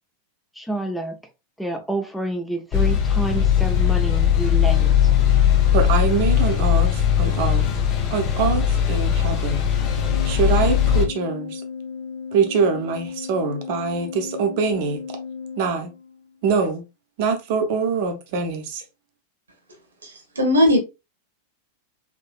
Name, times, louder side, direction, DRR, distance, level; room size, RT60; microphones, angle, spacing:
voice 1, 0.5-1.2 1.6-5.1, right 2 dB, ahead, 0.5 m, -28 dB
sound 1, 2.7-11.0, left 9 dB, 40° left, 0.7 m, -19 dB
voice 2, 5.7-7.7 8.1-9.6 10.2-11.6 12.3-15.0 15.6-15.9 16.4-16.8 17.2-18.8, right 5 dB, 50° right, 0.7 m, -24 dB
Organ, 9.8-16.4, left 5 dB, 80° left, 0.6 m, -35 dB
voice 3, 20.0-20.8, left 1 dB, 75° right, 1.1 m, -18 dB
3.7 x 2.7 x 2.3 m
figure-of-eight pair, 90°, 0 cm